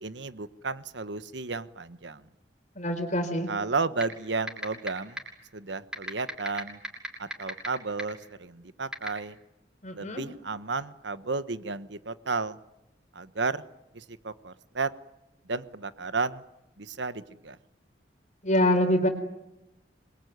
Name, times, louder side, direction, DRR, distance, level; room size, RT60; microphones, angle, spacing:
voice 1, 0.0-2.2 3.5-5.2 5.5-6.8 7.2-9.4 9.9-12.6 13.1-13.6 13.9-14.9 15.5-16.4 16.8-17.6, right 4 dB, 80° right, 13 dB, 1.3 m, -33 dB
voice 2, 2.8-3.5 9.8-10.2 18.4-19.1, left 1 dB, 40° left, 7 dB, 4.1 m, -25 dB
sound 1, 4.0-4.1 4.5-4.9 5.2-5.3 5.9-7.7 8.0-8.1 8.9-9.1, equal, 5° right, 6.4 m, -31 dB
27.0 x 22.5 x 9.5 m, 0.92 s
head